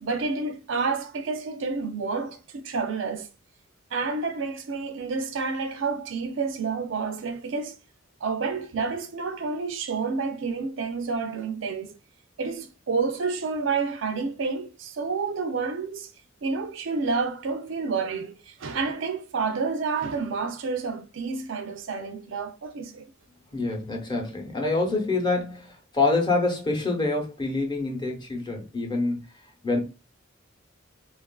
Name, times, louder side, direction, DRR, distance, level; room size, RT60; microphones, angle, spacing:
voice 1, 0.0-3.3 3.9-7.8 8.2-11.9 12.4-16.1 16.4-23.1, right 4 dB, 70° right, 0.5 m, -29 dB
voice 2, 23.5-29.3 29.6-29.8, left 3 dB, 25° left, 0.8 m, -26 dB
3.5 x 2.4 x 2.2 m
head